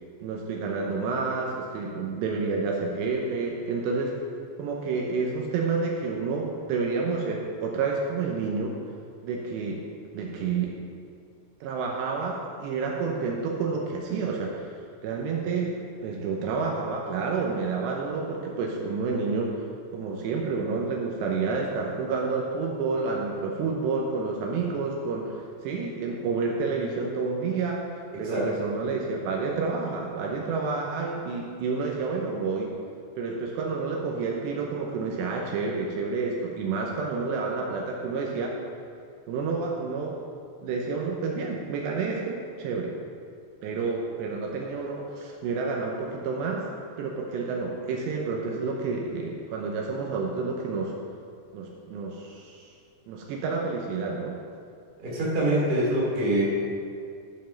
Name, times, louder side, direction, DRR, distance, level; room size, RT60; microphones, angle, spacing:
voice 1, 0.2-4.1 4.6-8.8 9.2-9.8 10.1-10.7 11.6-14.7 15.0-19.5 19.9-27.8 28.2-32.7 33.2-38.6 39.3-40.2 40.6-42.9 43.6-46.7 47.0-50.9 51.5-52.7 53.1-54.4, right 4 dB, 75° right, -1 dB, 2.8 m, -29 dB
voice 2, 28.1-28.5 55.0-56.4, right 1 dB, 20° right, -6 dB, 1.7 m, -25 dB
11.5 x 5.4 x 5.7 m, 2.3 s
omnidirectional pair, 5.3 m